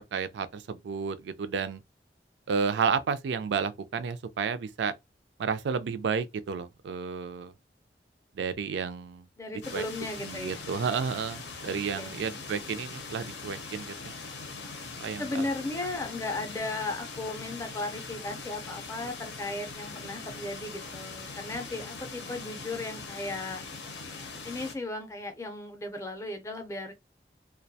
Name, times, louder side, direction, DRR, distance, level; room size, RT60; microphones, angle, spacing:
voice 1, 0.1-1.8 2.5-4.9 5.4-7.5 8.4-9.3 9.7-9.8 10.2-14.1 15.0-15.5, right 5 dB, 80° right, 0.3 m, -31 dB
voice 2, 9.4-10.6 12.0-12.2 15.2-23.6 24.4-26.9, left 2 dB, 15° left, 0.5 m, -36 dB
sound 1, 9.6-24.7, left 4 dB, 85° left, 0.6 m, -41 dB
2.3 x 2.1 x 2.6 m
head